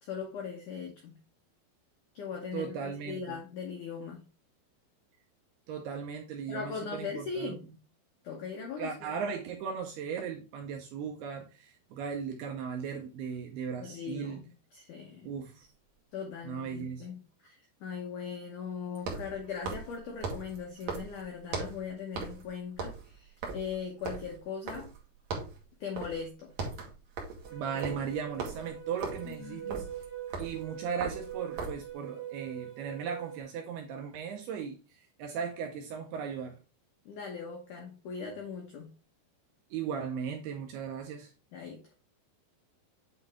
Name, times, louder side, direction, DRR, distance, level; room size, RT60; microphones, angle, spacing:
voice 1, 0.0-1.2 2.1-2.8 3.1-4.2 6.5-7.6 8.2-9.2 13.8-15.3 16.1-24.9 25.8-26.5 29.2-29.9 37.1-38.9 41.5-41.8, left 6 dB, 85° left, 1.7 m, -40 dB
voice 2, 2.5-3.4 5.7-7.6 8.8-14.4 15.2-15.7 16.4-17.1 27.5-29.9 30.4-36.6 39.7-41.3, right 6 dB, 80° right, 2.4 m, -37 dB
sound 1, 15.6-15.7 18.9-21.9 22.1-22.5 22.7-25.0 25.3-25.6 26.0-26.2 26.5-31.9, right 4 dB, 60° right, 1.8 m, -39 dB
sound 2, 27.4-33.4, right 11 dB, 30° left, 1.0 m, -43 dB
8.8 x 3.9 x 3.5 m
omnidirectional pair, 5.4 m